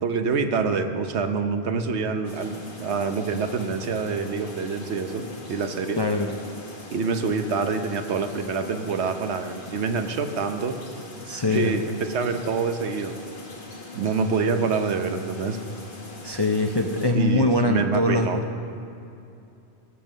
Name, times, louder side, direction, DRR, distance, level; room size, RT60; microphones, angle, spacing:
voice 1, 0.0-2.5 2.8-6.0 6.9-10.8 11.5-13.1 13.9-15.6 17.1-18.4, right 5 dB, 80° right, 7 dB, 1.1 m, -26 dB
sound 1, 2.2-17.1, left 2 dB, 50° left, 1.8 m, -42 dB
voice 2, 6.0-6.3 11.3-11.8 16.2-18.3, left 2 dB, 35° left, 4 dB, 0.4 m, -22 dB
17.5 x 7.2 x 6.2 m, 2.6 s
omnidirectional pair, 1.1 m